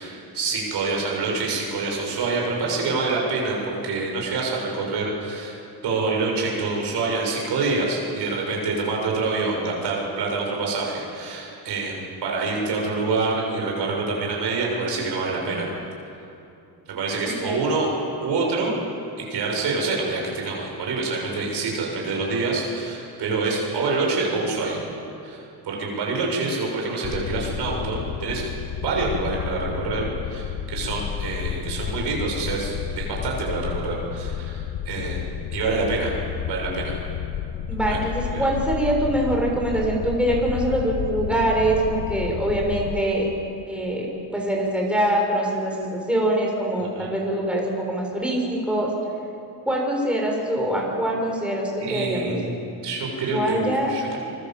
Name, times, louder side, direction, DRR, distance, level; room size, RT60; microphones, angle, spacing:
voice 1, 0.0-5.6 5.8-15.7 16.9-17.9 18.2-18.7 19.2-24.8 25.2-25.4 25.6-28.4 28.8-35.2 35.5-36.1 36.5-37.0 37.9-38.0 38.3-38.4 47.0-47.1 51.8-54.2, right 3 dB, 85° right, -1 dB, 7.3 m, -26 dB
sound 1, 27.0-43.0, left 9 dB, 85° left, 1.2 m, -31 dB
voice 2, 37.7-43.3 43.7-44.1 44.3-48.9 49.6-52.5 53.3-54.2, right 1 dB, 5° right, -1 dB, 6.2 m, -24 dB
26.0 x 24.5 x 7.8 m, 2.7 s
cardioid pair, 105°, 41 cm